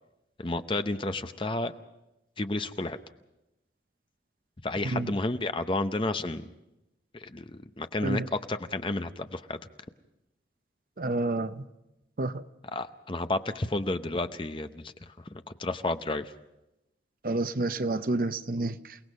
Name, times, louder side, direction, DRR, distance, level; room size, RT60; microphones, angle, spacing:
voice 1, 0.4-1.7 2.4-3.0 4.6-6.5 7.1-8.2 8.5-9.6 12.7-16.3, left 2 dB, 30° left, 9 dB, 0.7 m, -31 dB
voice 2, 4.8-5.2 8.0-8.3 11.0-11.7 12.2-12.4 17.2-19.0, right 2 dB, 50° right, 11 dB, 0.7 m, -29 dB
29.0 x 18.0 x 5.4 m, 0.92 s
head